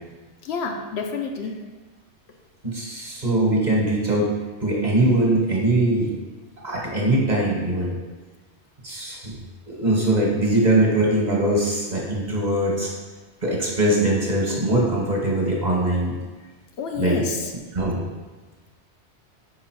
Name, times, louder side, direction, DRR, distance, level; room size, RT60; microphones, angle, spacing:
voice 1, 0.4-1.6 16.8-17.5, left 5 dB, 70° left, 3 dB, 0.8 m, -29 dB
voice 2, 2.6-4.3 4.6-6.1 6.6-7.9 8.8-9.3 9.7-12.9 13.4-16.2 17.0-17.2 17.7-18.0, right 1 dB, 40° right, -3 dB, 1.3 m, -21 dB
4.9 x 4.7 x 4.6 m, 1.3 s
omnidirectional pair, 1.2 m